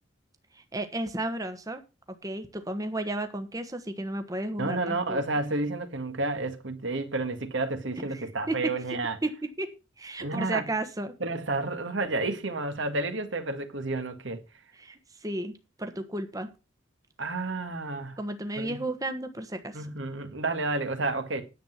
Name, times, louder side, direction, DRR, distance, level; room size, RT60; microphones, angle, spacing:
voice 1, 0.5-1.8 2.2-5.2 7.9-8.7 9.2-9.3 9.6-9.7 10.0-11.1 14.8-15.5 15.8-16.5 18.2-19.9, right 1 dB, 20° right, 1.2 m, -33 dB
voice 2, 4.6-9.2 10.2-10.7 11.2-14.4 17.2-18.2 18.6-18.8 19.7-21.4, right 2 dB, 70° right, 1.8 m, -30 dB
10.5 x 8.0 x 5.8 m
head